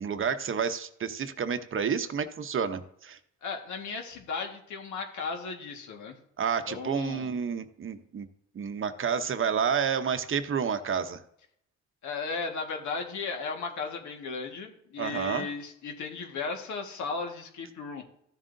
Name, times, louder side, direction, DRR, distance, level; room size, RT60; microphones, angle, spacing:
voice 1, 0.0-3.2 6.4-8.3 8.5-11.2 15.0-15.5, right 7 dB, 45° right, 10 dB, 0.8 m, -30 dB
voice 2, 3.4-6.2 6.7-7.3 12.0-18.0, left 4 dB, 70° left, 3 dB, 1.7 m, -35 dB
14.0 x 7.4 x 2.7 m, 0.72 s
cardioid pair, 90°, 30 cm